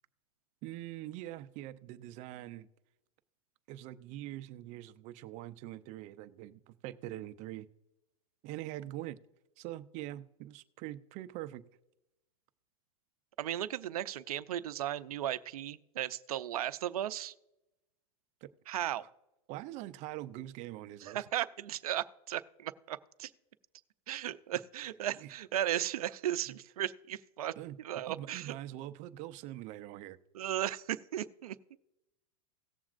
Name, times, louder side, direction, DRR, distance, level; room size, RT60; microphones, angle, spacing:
voice 1, 0.6-2.7 3.7-7.7 8.4-9.2 9.6-11.7 18.4-19.1 19.5-21.2 25.1-25.3 26.5-26.6 27.6-27.8 28.1-30.2, right 14 dB, 40° right, 11 dB, 0.6 m, -44 dB
voice 2, 13.4-17.3 18.7-19.0 21.0-23.3 24.1-28.5 30.3-31.6, right 12 dB, 90° right, 13 dB, 0.6 m, -36 dB
18.0 x 7.1 x 2.5 m, 0.94 s
supercardioid pair, 135°, 18 cm